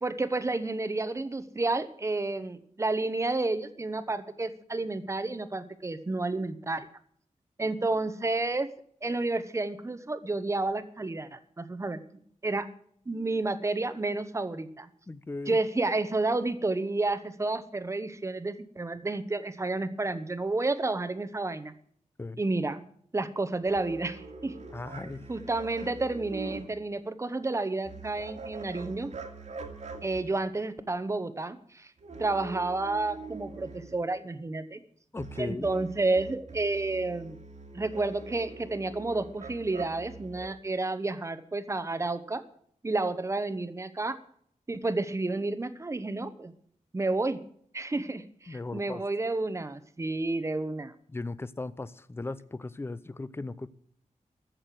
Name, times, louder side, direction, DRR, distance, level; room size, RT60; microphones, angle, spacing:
voice 1, 0.0-6.9 7.6-8.7 9.0-12.0 12.4-12.7 13.1-14.9 15.5-21.7 22.4-22.8 23.1-24.5 25.3-29.1 30.0-31.9 32.2-34.8 35.4-37.4 37.7-42.4 42.8-44.2 44.7-46.5 46.9-47.4 47.7-50.9, right 2 dB, 25° right, 1.0 m, -30 dB
voice 2, 15.1-15.6 22.2-22.4 24.7-25.3 35.1-35.7 48.5-49.0 51.1-53.7, left 2 dB, 20° left, 0.6 m, -37 dB
sound 1, 23.6-26.7 27.8-30.4 32.0-33.9 35.2-40.5, right 4 dB, 65° right, 2.2 m, -43 dB
15.0 x 6.6 x 7.6 m
wide cardioid pair, 145°, 13 cm